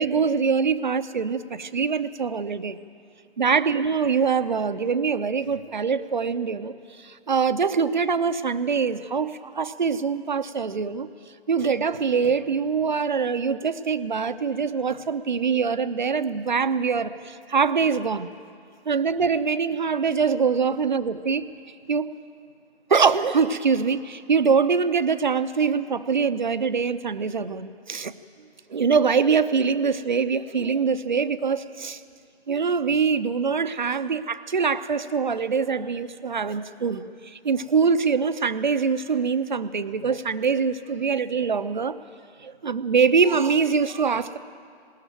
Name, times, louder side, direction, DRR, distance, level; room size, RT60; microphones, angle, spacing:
voice 1, 0.0-2.8 3.4-11.1 11.5-18.3 18.9-21.5 21.9-22.1 22.9-28.1 28.7-32.0 32.5-42.0 42.4-44.4, right 5 dB, 45° right, 13 dB, 0.8 m, -24 dB
20.0 x 19.0 x 9.1 m, 2.3 s
figure-of-eight pair, 145°, 32 cm